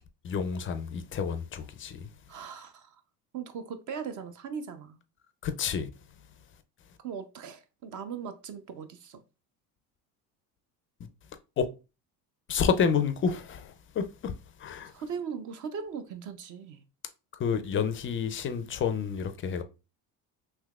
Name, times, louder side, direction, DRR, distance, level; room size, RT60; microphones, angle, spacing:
voice 1, 0.2-2.1 5.4-5.9 11.6-11.7 12.5-14.3 14.6-14.9 17.4-19.6, left 6 dB, 30° left, 0.4 m, -29 dB
voice 2, 2.3-3.0 3.3-5.0 7.0-9.2 14.9-16.8, right 6 dB, 40° right, 0.5 m, -39 dB
3.3 x 3.0 x 2.3 m
hypercardioid pair, 75°, 47 cm